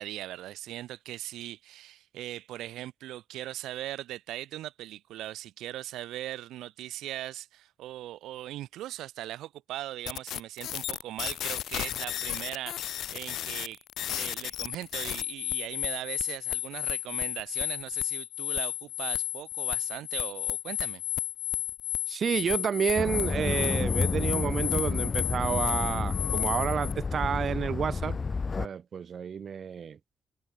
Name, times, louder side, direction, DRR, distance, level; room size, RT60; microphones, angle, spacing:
voice 1, 0.0-21.0, right 14 dB, 85° right, 0.9 m, -39 dB
sound 1, 10.1-26.9, left 11 dB, 75° left, 0.5 m, -33 dB
voice 2, 22.1-28.2 28.6-30.0, right 7 dB, 50° right, 0.8 m, -30 dB
sound 2, 22.9-28.7, left 4 dB, 30° left, 0.6 m, -30 dB
cardioid pair, 90°, 0 cm